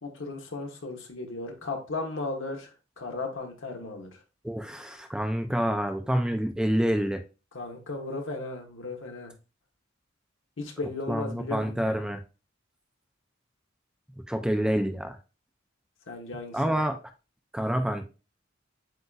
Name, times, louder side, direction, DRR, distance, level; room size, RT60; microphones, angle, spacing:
voice 1, 0.0-2.7 3.0-4.1 7.5-9.3 10.6-11.8 16.1-16.8, left 3 dB, 75° left, 2 dB, 1.1 m, -35 dB
voice 2, 4.4-7.2 11.1-12.2 14.3-15.2 16.5-17.0 17.5-18.0, equal, 5° right, 7 dB, 0.4 m, -27 dB
7.8 x 2.6 x 2.3 m, 0.31 s
head